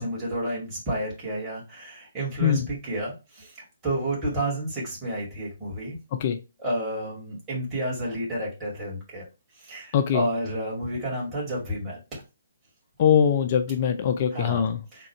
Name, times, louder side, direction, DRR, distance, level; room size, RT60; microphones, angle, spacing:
voice 1, 0.0-6.0 6.6-9.3 9.6-12.0 14.3-15.1, right 1 dB, 15° right, 2.1 m, -31 dB
voice 2, 9.9-10.3 13.0-14.8, left 8 dB, 40° left, 0.4 m, -22 dB
3.7 x 2.3 x 4.4 m
figure-of-eight pair, 135°, 0 cm